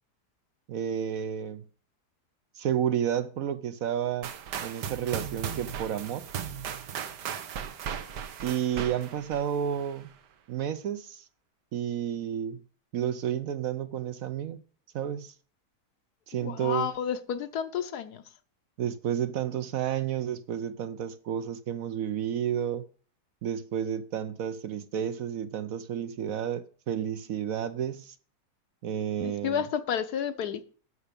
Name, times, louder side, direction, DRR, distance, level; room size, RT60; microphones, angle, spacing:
voice 1, 0.7-1.6 2.5-4.3 4.6-6.3 8.4-10.1 10.5-11.3 11.7-12.6 12.9-14.6 14.9-15.3 16.3-16.9 18.8-22.8 23.4-28.2 28.8-29.6, right 9 dB, 65° right, 1.0 m, -31 dB
sound 1, 4.2-10.1, right 8 dB, 85° right, 1.5 m, -37 dB
voice 2, 16.4-18.2 29.2-30.6, left 8 dB, 70° left, 1.4 m, -31 dB
11.5 x 7.0 x 5.2 m
omnidirectional pair, 1.8 m